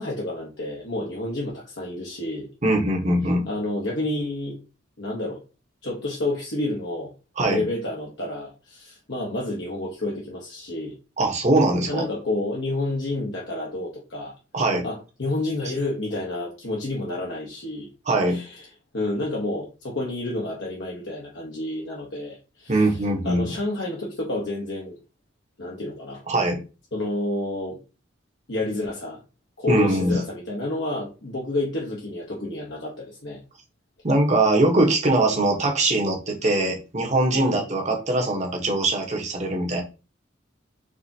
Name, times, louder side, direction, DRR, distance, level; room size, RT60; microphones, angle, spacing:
voice 1, 0.0-2.5 3.5-4.6 5.0-5.4 5.8-7.1 7.4-10.9 11.9-14.3 14.8-17.9 18.3-18.7 18.9-23.0 23.2-25.0 25.6-26.2 26.9-27.8 28.5-29.2 29.6-33.4 37.3-37.6, left 2 dB, 60° left, 1.1 m, -29 dB
voice 2, 2.6-3.5 7.4-7.6 11.2-12.0 14.5-14.8 18.1-18.4 22.7-23.5 26.3-26.6 29.7-30.2 34.0-39.8, right 2 dB, 35° right, 1.2 m, -22 dB
5.0 x 3.5 x 2.8 m
head